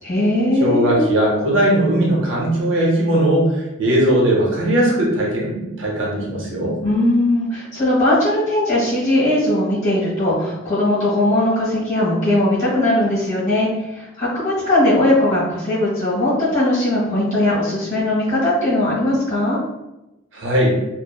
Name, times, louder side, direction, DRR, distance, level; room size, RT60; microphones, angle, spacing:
voice 1, 0.0-1.1 6.8-19.6, left 1 dB, 30° left, -9 dB, 1.3 m, -19 dB
voice 2, 0.6-6.7 20.3-20.8, right 1 dB, 60° right, -3 dB, 0.6 m, -18 dB
2.8 x 2.0 x 2.2 m, 0.95 s
head